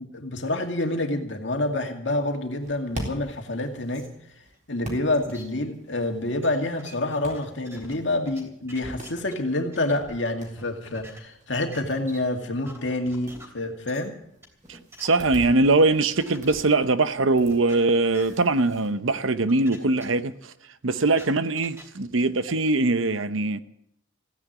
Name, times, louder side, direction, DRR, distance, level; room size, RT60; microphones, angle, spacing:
voice 1, 0.0-4.1 4.7-14.1, left 2 dB, 65° left, 2.3 m, -27 dB
sound 1, 2.5-18.9, right 1 dB, 40° right, 3.7 m, -45 dB
sound 2, 3.9-4.1 4.5-4.6 5.1-5.4 6.4-6.5 6.8-7.9 8.2-8.4 8.7-9.3 9.7-10.2 10.6-11.2 11.7-11.8 12.1-12.2 12.6-13.5 13.9-14.0 14.4-15.2 16.0-16.5 16.8-16.9 17.5-17.7 18.1-18.2 18.9-19.0 19.5-19.8 20.0-20.1 20.6-21.8 22.5-22.6, equal, 15° right, 3.2 m, -45 dB
voice 2, 14.7-20.5 20.8-23.6, right 2 dB, 85° right, 0.9 m, -22 dB
16.0 x 9.9 x 8.5 m
head